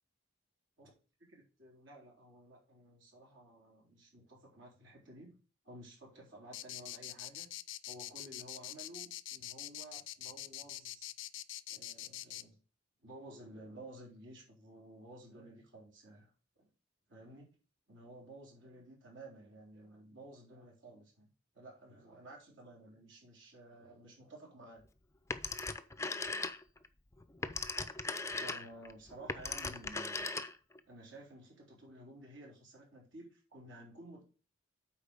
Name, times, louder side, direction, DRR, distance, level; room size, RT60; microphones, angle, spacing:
voice 1, 1.3-7.5 7.8-11.1 11.7-12.6 13.0-16.3 16.6-16.7 17.1-17.6 17.9-21.3 21.5-24.8 28.3-30.3 30.9-34.2, right 1 dB, 65° right, -1 dB, 3.9 m, -54 dB
sound 1, 6.5-12.4, left 14 dB, 70° left, 0.5 m, -44 dB
Telephone, 25.3-26.9 27.2-30.8, left 3 dB, 15° left, 0.5 m, -38 dB
8.4 x 4.6 x 6.7 m, 0.35 s
head